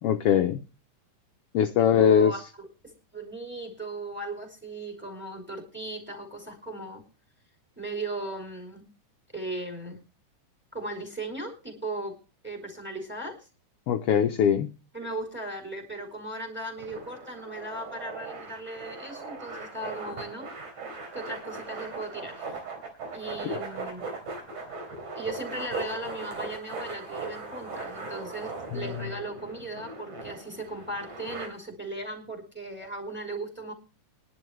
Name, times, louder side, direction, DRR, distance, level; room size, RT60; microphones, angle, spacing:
voice 1, 0.0-0.6 1.5-2.4 13.9-14.7 23.4-23.6 28.7-29.1, left 8 dB, 70° left, 7 dB, 1.4 m, -22 dB
voice 2, 1.8-7.0 7.8-8.9 9.3-10.0 10.7-12.2 12.4-13.5 14.9-20.5 21.1-22.7 23.1-24.1 25.1-33.7, right 2 dB, 5° right, 2 dB, 3.2 m, -37 dB
sound 1, 16.8-31.5, right 3 dB, 90° right, 5.3 m, -39 dB
21.5 x 11.0 x 3.3 m, 0.32 s
omnidirectional pair, 3.5 m